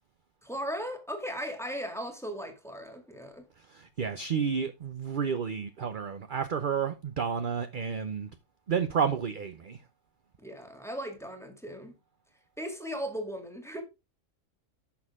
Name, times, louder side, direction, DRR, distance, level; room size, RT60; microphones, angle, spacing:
voice 1, 0.4-3.5 10.4-12.0 12.6-13.8, equal, ahead, 1.9 m, -37 dB
voice 2, 3.7-8.3 8.7-9.8, right 6 dB, 45° right, 0.8 m, -31 dB
11.5 x 6.5 x 3.6 m
omnidirectional pair, 1.5 m